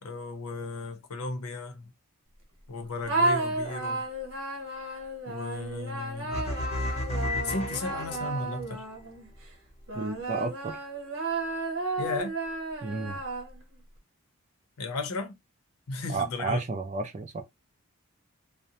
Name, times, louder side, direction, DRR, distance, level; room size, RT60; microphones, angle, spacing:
voice 1, 0.0-1.9 2.7-4.1 5.3-6.5 7.4-8.8 12.0-12.3 14.8-15.3 15.9-16.6, left 3 dB, 80° left, 0.7 m, -35 dB
sound 1, 3.1-9.3 9.9-13.8, right 2 dB, 60° right, 1.0 m, -32 dB
sound 2, 6.3-8.7, left 1 dB, 30° left, 0.6 m, -32 dB
voice 2, 9.9-10.8 12.8-13.2 16.1-17.4, right 3 dB, 30° right, 0.4 m, -32 dB
2.6 x 2.1 x 2.8 m
head